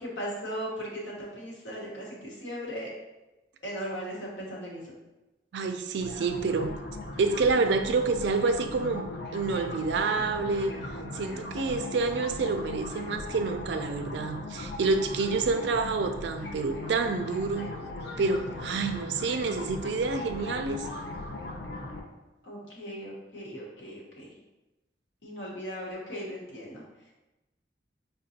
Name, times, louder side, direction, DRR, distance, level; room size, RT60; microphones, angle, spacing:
voice 1, 0.0-2.9 3.6-4.9 22.4-24.4 25.2-27.1, equal, 85° left, -4 dB, 1.1 m, -38 dB
voice 2, 5.5-6.8 7.2-10.7 11.1-17.7 18.2-20.9, right 4 dB, 70° right, 7 dB, 0.3 m, -28 dB
sound 1, 6.0-22.0, left 2 dB, 60° left, 0.5 m, -38 dB
5.0 x 2.2 x 2.7 m, 1.0 s
head